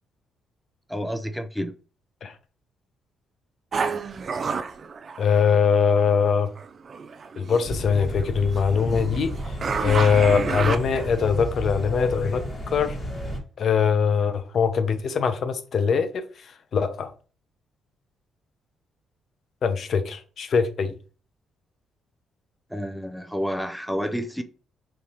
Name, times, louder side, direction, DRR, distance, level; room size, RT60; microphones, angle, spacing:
voice 1, 0.9-1.8 22.7-24.4, equal, ahead, 0.6 m, -29 dB
sound 1, 3.7-5.9 6.6-7.7 8.2-11.3, right 5 dB, 45° right, 0.4 m, -30 dB
voice 2, 5.2-6.5 7.4-9.3 9.8-13.0 13.6-16.2 16.7-17.1 19.6-20.9, left 6 dB, 60° left, 0.7 m, -22 dB
sound 2, 7.6-13.4, equal, 30° left, 1.7 m, -32 dB
5.2 x 3.0 x 2.9 m
cardioid pair, 90°, 0 cm